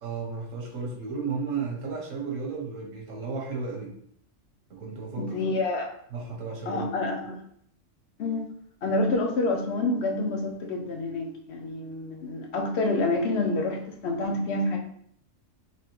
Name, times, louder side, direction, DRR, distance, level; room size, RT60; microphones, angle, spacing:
voice 1, 0.0-3.9 4.7-5.4 6.1-6.8, right 4 dB, 90° right, 0 dB, 1.4 m, -33 dB
voice 2, 5.2-5.9 6.7-7.4 8.2-8.4 8.8-14.8, left 2 dB, 65° left, 2 dB, 0.9 m, -28 dB
4.1 x 3.1 x 3.0 m, 0.65 s
omnidirectional pair, 1.3 m